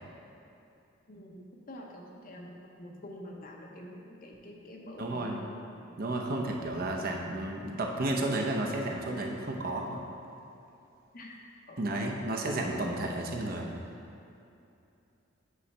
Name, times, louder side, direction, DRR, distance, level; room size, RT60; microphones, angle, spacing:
voice 1, 1.1-5.6 11.1-11.4 11.7-12.1, left 1 dB, 45° left, 0 dB, 0.7 m, -47 dB
voice 2, 5.0-5.4 6.0-10.0 11.8-13.7, right 1 dB, 50° right, 0 dB, 0.6 m, -32 dB
8.4 x 3.2 x 5.4 m, 2.7 s
head